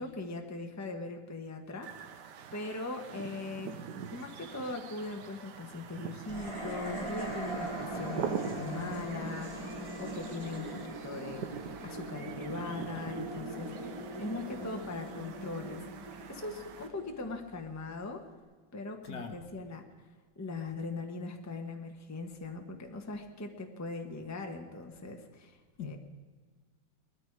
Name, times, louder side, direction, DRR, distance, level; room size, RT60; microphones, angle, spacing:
voice 1, 0.0-2.2 2.5-3.8 4.1-13.7 14.2-15.8 16.3-18.2 18.7-19.8 20.3-26.0, left 3 dB, 10° left, 4 dB, 1.1 m, -40 dB
sound 1, 1.8-16.9, right 7 dB, 65° right, 1.4 m, -44 dB
sound 2, 6.3-17.6, right 1 dB, 15° right, 3.2 m, -41 dB
voice 2, 19.0-19.4 25.8-26.0, left 6 dB, 60° left, 6 dB, 1.7 m, -41 dB
20.0 x 14.0 x 4.8 m, 1.4 s
omnidirectional pair, 2.1 m